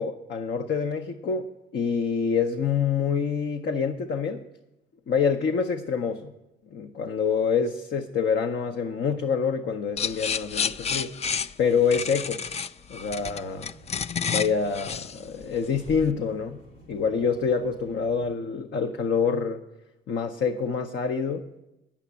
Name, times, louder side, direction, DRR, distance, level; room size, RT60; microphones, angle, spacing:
voice 1, 0.0-1.4 1.7-4.4 5.1-6.3 6.7-12.4 12.9-13.7 14.3-16.6 16.9-19.6 20.1-21.4, left 6 dB, 60° left, 5 dB, 0.7 m, -26 dB
sound 1, 10.0-16.1, left 6 dB, 35° left, 0.4 m, -30 dB
sound 2, 13.1-18.3, right 1 dB, 85° left, 1.5 m, -52 dB
9.0 x 7.2 x 8.6 m, 0.95 s
cardioid pair, 90°, 20 cm